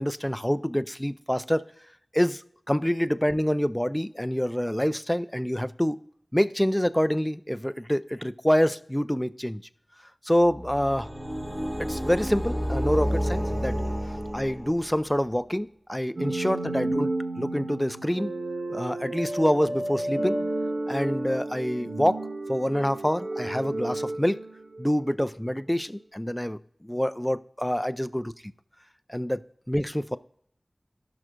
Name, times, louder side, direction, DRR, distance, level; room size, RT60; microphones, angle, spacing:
voice 1, 0.0-1.6 2.1-2.4 2.7-6.0 6.3-9.6 10.2-11.1 11.8-13.8 14.3-18.3 18.7-20.4 20.9-24.4 24.8-28.5 29.1-30.2, equal, 10° left, 13 dB, 0.4 m, -26 dB
sound 1, 10.4-15.1, equal, 25° right, 1.8 m, -30 dB
sound 2, 16.2-25.1, right 2 dB, 80° right, 1.1 m, -32 dB
18.0 x 6.1 x 2.5 m, 0.66 s
wide cardioid pair, 45°, 0 cm